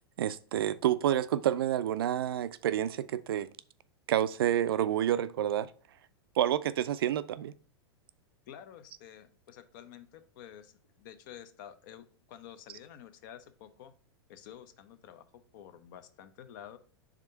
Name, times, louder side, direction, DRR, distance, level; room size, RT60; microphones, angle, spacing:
voice 1, 0.2-3.5 4.1-5.7 6.4-7.5, right 11 dB, 60° right, 0.4 m, -29 dB
voice 2, 8.5-13.9 14.3-16.8, left 10 dB, 45° left, 0.7 m, -50 dB
5.0 x 3.6 x 5.6 m
figure-of-eight pair, 95°, 14 cm